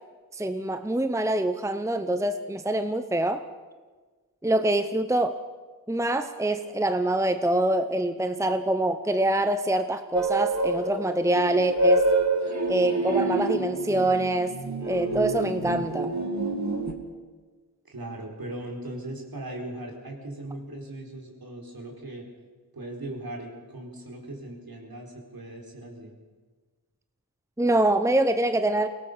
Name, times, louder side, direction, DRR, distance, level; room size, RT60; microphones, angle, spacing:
voice 1, 0.3-3.4 4.4-5.4 5.9-12.0 12.7-14.5 14.8-16.1 27.6-28.9, right 1 dB, 10° right, 9 dB, 0.9 m, -25 dB
sound 1, 10.1-16.9, right 2 dB, 45° right, 2.3 m, -27 dB
voice 2, 17.8-22.3 22.7-26.1, right 1 dB, 65° right, 0 dB, 4.5 m, -38 dB
23.0 x 17.5 x 6.9 m, 1.4 s
wide cardioid pair, 75°, 38 cm